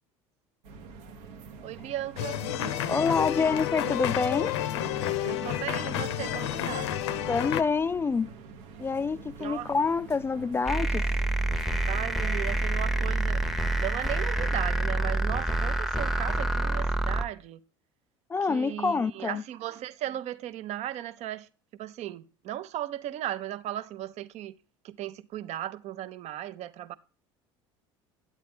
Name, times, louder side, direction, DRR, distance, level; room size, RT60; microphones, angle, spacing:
sound 1, 0.6-14.1, right 4 dB, 80° right, 0.9 m, -46 dB
voice 1, 1.6-2.4 5.2-6.9 9.4-9.7 11.9-13.4 13.8-17.6 18.5-21.5 21.8-24.5 24.8-26.9, right 12 dB, 50° right, 0.6 m, -36 dB
sound 2, 2.2-7.6, left 10 dB, 80° left, 0.6 m, -30 dB
voice 2, 2.9-4.6 7.3-8.3 8.8-11.1 18.3-19.4, left 5 dB, 15° left, 0.4 m, -27 dB
sound 3, 10.7-17.2, right 2 dB, ahead, 0.8 m, -27 dB
9.5 x 8.3 x 3.5 m
hypercardioid pair, 75°, 14 cm